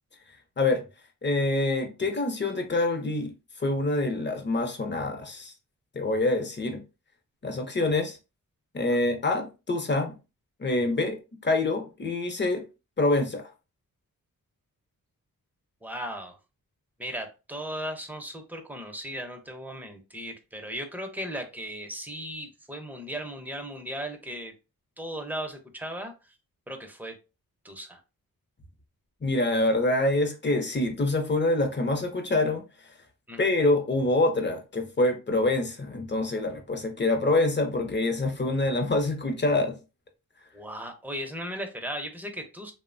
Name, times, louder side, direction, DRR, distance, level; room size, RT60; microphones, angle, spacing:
voice 1, 1.2-3.3 3.6-5.5 5.9-6.8 7.4-8.2 8.7-10.1 10.6-12.6 13.0-13.4 29.2-32.6 33.4-39.8, left 2 dB, 30° left, 0.7 m, -26 dB
voice 2, 15.8-16.4 17.0-24.5 25.0-26.3 26.7-27.1 27.6-28.0 33.3-33.4 40.5-42.7, equal, 5° right, 0.6 m, -37 dB
2.9 x 2.1 x 2.5 m
cardioid pair, 50°, 36 cm